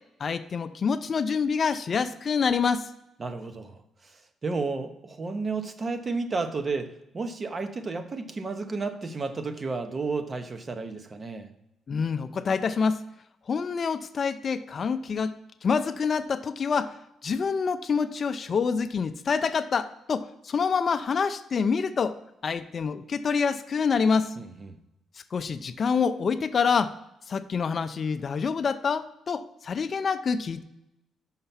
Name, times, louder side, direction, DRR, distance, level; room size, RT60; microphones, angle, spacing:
voice 1, 0.2-2.9 11.9-13.0 13.5-15.3 15.6-16.9 17.2-24.3 25.3-26.9 27.3-30.6, left 5 dB, 45° left, 11 dB, 0.4 m, -26 dB
voice 2, 3.2-11.5 24.4-24.8, right 4 dB, 35° right, 8 dB, 0.8 m, -32 dB
5.7 x 5.5 x 5.6 m, 0.86 s
cardioid pair, 90°, 0 cm